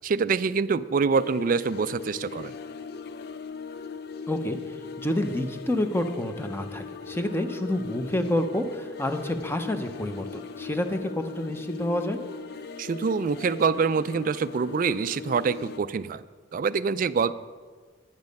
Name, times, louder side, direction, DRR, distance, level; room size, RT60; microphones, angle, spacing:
voice 1, 0.0-2.6 12.8-16.2 16.5-17.3, right 5 dB, 45° right, 15 dB, 0.3 m, -25 dB
sound 1, 1.1-15.8, left 5 dB, 55° left, 0.5 m, -39 dB
voice 2, 4.3-4.6 5.0-12.2, left 1 dB, 10° left, 7 dB, 0.8 m, -28 dB
10.5 x 10.5 x 5.3 m, 1.5 s
head